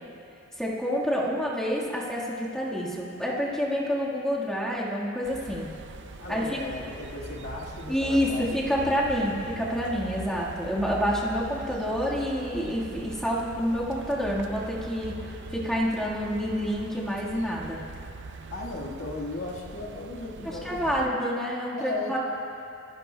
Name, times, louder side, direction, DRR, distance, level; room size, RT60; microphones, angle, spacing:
voice 1, 0.6-5.7 6.3-6.6 7.9-15.2 15.5-17.8 20.4-22.2, equal, 5° left, -6 dB, 1.6 m, -28 dB
sound 1, 5.2-21.1, right 3 dB, 60° right, 0.5 m, -42 dB
voice 2, 6.2-9.6 18.5-21.2 21.8-22.2, left 2 dB, 75° left, -3 dB, 1.6 m, -37 dB
29.0 x 10.5 x 2.2 m, 2.6 s
head